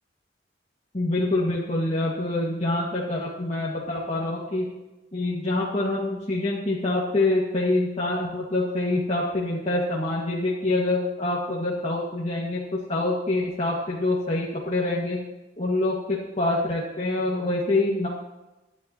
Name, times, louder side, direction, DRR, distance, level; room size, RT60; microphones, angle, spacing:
voice 1, 0.9-4.7 5.1-15.2 15.6-18.1, left 2 dB, 35° left, -5 dB, 1.8 m, -26 dB
24.0 x 9.9 x 2.9 m, 1.0 s
head